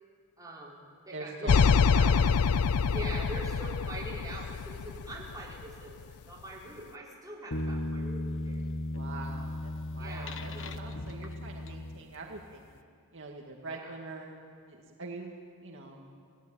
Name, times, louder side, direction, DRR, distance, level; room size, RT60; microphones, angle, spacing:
voice 1, 0.4-2.2 2.8-8.7 10.0-10.8 13.7-13.9, right 1 dB, 15° right, -4 dB, 5.1 m, -43 dB
voice 2, 1.1-1.5 1.9-2.2 8.9-12.7 13.1-14.3 14.7-16.0, right 3 dB, 60° right, 0 dB, 2.3 m, -44 dB
sound 1, 1.5-5.7, left 5 dB, 85° left, 0.5 m, -25 dB
sound 2, 7.5-12.4, left 1 dB, 60° left, 1.2 m, -36 dB
29.5 x 18.5 x 9.1 m, 2.2 s
head